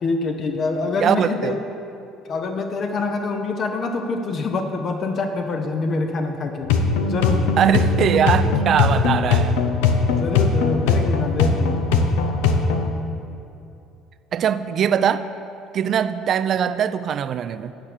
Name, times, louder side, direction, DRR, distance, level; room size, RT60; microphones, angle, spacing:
voice 1, 0.0-1.6 2.3-6.7 7.1-7.5 10.1-12.0, left 3 dB, 50° left, 5 dB, 0.6 m, -25 dB
voice 2, 1.0-1.6 7.6-9.6 14.3-15.3 15.7-17.7, right 8 dB, 55° right, 13 dB, 0.3 m, -21 dB
sound 1, 6.6-12.9, left 4 dB, 90° left, 0.5 m, -20 dB
8.9 x 4.4 x 6.5 m, 2.8 s
supercardioid pair, 85°, 0 cm